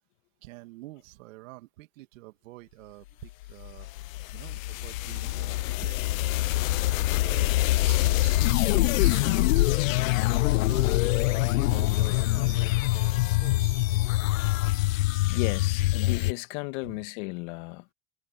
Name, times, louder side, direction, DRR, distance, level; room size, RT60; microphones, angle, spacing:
voice 1, 0.4-3.9 4.3-6.2 7.1-10.1 10.4-11.1 11.5-14.0 16.8-17.0, right 18 dB, 70° right, 2.6 m, -47 dB
sound 1, 3.5-16.3, left 17 dB, 80° left, 0.7 m, -25 dB
voice 2, 15.3-17.9, left 26 dB, 60° left, 1.8 m, -34 dB
hypercardioid pair, 110°, 40 cm